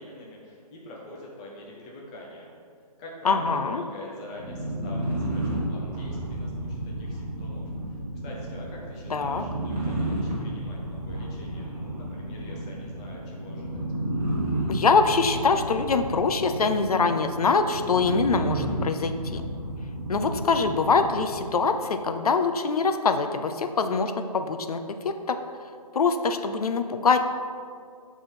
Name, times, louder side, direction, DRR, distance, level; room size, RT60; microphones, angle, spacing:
voice 1, 0.0-2.5 3.0-13.8, left 1 dB, 10° left, -3 dB, 0.3 m, -44 dB
voice 2, 3.2-3.8 9.1-9.4 14.7-19.4 20.1-25.4 25.9-27.3, left 4 dB, 65° left, 8 dB, 0.6 m, -24 dB
sound 1, 4.3-21.6, right 1 dB, 25° right, 1.7 m, -32 dB
sound 2, 6.0-18.5 18.9-19.0, right 3 dB, 60° right, 0.5 m, -46 dB
9.1 x 3.6 x 4.3 m, 2.2 s
figure-of-eight pair, 145°, 20 cm